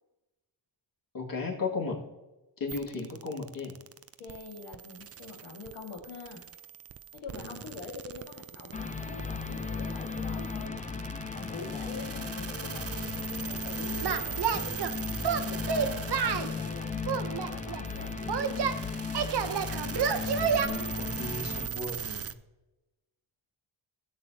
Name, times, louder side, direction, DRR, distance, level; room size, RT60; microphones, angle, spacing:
voice 1, 1.1-2.0 2.6-3.7 7.3-7.6 20.4-22.3, left 3 dB, 45° left, 0 dB, 2.2 m, -35 dB
sound 1, 2.7-22.3, right 9 dB, 30° right, 0.4 m, -41 dB
voice 2, 4.2-6.4 7.1-14.8 15.2-18.8, left 4 dB, 90° left, 1 dB, 2.1 m, -44 dB
sound 2, 8.7-21.7, left 5 dB, 15° left, 0.6 m, -36 dB
Singing, 14.0-14.9 15.2-16.5 17.1-18.8 19.1-20.7, right 7 dB, 55° right, 0.9 m, -29 dB
16.5 x 7.6 x 2.9 m, 1.1 s
cardioid pair, 90°, 49 cm